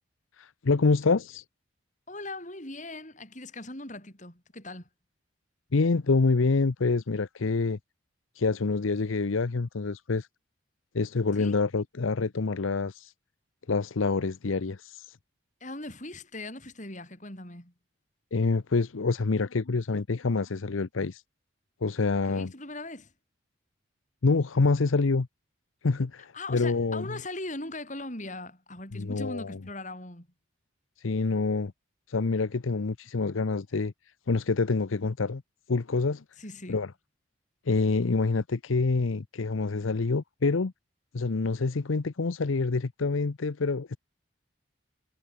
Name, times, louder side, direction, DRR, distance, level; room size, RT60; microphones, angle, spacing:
voice 1, 0.4-1.4 5.7-7.8 8.4-10.3 10.9-13.1 13.7-15.2 18.3-21.2 21.8-22.5 24.2-25.3 25.8-27.0 28.9-29.6 31.0-31.7 32.1-33.9 34.3-35.4 35.7-36.2 36.7-36.9 37.7-40.7 41.1-44.0, left 3 dB, 85° left, 0.7 m, -26 dB
voice 2, 2.1-4.9 11.4-11.6 15.6-17.7 22.1-23.1 26.3-30.3 36.4-36.8, left 2 dB, 40° left, 7.9 m, -40 dB
head